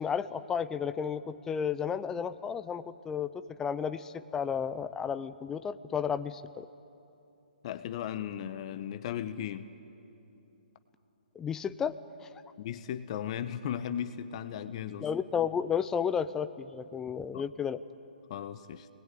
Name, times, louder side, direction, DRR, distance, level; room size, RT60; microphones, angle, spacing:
voice 1, 0.0-6.7 11.4-11.9 15.0-17.8, left 7 dB, 10° left, 12 dB, 0.5 m, -32 dB
voice 2, 7.6-9.7 12.6-15.1 17.3-17.5 18.3-18.9, left 9 dB, 40° left, 10 dB, 1.0 m, -36 dB
28.0 x 20.0 x 9.3 m, 2.8 s
hypercardioid pair, 150°, 5 cm